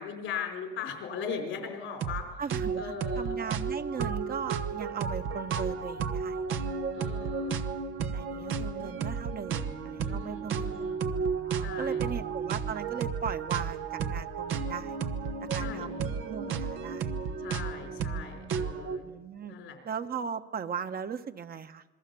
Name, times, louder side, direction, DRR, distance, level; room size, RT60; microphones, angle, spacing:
voice 1, 0.0-2.3 2.8-3.4 6.9-7.6 10.0-11.0 11.6-12.1 15.6-16.0 17.4-19.0 19.5-19.8, left 6 dB, 90° left, 4 dB, 4.5 m, -39 dB
sound 1, 2.0-2.2 2.5-19.0, right 6 dB, 85° right, 1.2 m, -33 dB
voice 2, 2.4-6.4 8.1-10.9 11.4-15.0 15.4-17.2 19.0-19.5 19.8-21.8, right 7 dB, 50° right, 8 dB, 1.3 m, -38 dB
27.5 x 21.5 x 7.0 m, 1.1 s
cardioid pair, 90°, 20 cm